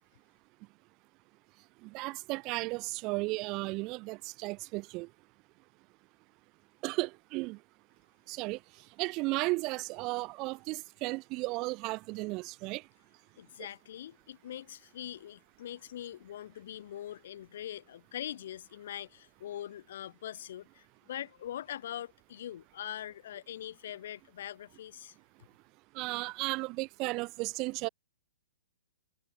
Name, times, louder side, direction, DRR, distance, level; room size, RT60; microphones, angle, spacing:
voice 1, 1.8-5.1 6.8-7.6 8.3-8.6 9.0-12.8 25.9-27.9, right 24 dB, 35° right, 2.0 m, -34 dB
voice 2, 13.4-25.2, left 11 dB, 55° left, 7.6 m, -42 dB
figure-of-eight pair, 120°, 0 cm